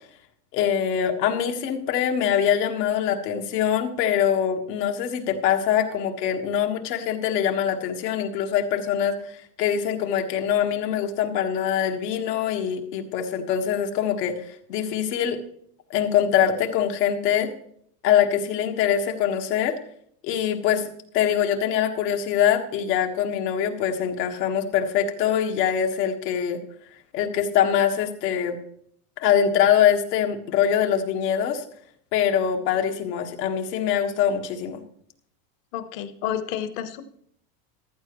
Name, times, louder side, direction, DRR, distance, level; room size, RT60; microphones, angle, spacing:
voice 1, 0.5-15.4 15.9-17.5 18.0-19.8 20.2-20.9 21.1-26.6 27.1-28.6 29.2-31.6 32.1-34.8, left 9 dB, 80° left, 4 dB, 1.7 m, -23 dB
voice 2, 35.7-37.0, left 10 dB, 55° left, 11 dB, 1.2 m, -30 dB
15.0 x 11.5 x 3.1 m, 0.66 s
supercardioid pair, 160°, 48 cm